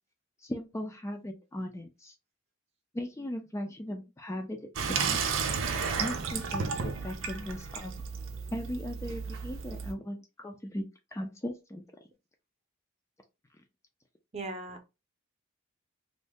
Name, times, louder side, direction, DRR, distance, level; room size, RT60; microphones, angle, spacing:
voice 1, 0.4-2.1 2.9-5.2 6.0-8.0 8.5-10.8 11.1-11.8, equal, 15° left, 0.3 m, -38 dB
Water tap faucet / Sink (filling or washing), 4.8-9.9, right 5 dB, 80° right, 0.5 m, -33 dB
voice 2, 14.3-14.8, right 2 dB, 35° right, 0.7 m, -39 dB
2.6 x 2.1 x 3.4 m
head